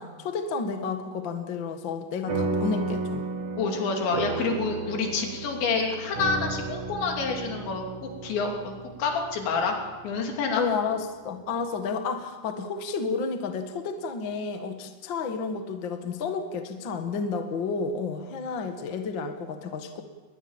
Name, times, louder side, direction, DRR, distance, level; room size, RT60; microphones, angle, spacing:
voice 1, 0.0-3.2 10.5-20.0, left 4 dB, 60° left, 6 dB, 1.2 m, -31 dB
sound 1, 2.3-11.0, right 3 dB, 45° right, 1.7 m, -34 dB
voice 2, 3.6-8.7 9.0-9.8 10.0-10.6, left 4 dB, 80° left, 2 dB, 5.2 m, -28 dB
22.0 x 20.5 x 7.3 m, 1.3 s
omnidirectional pair, 5.1 m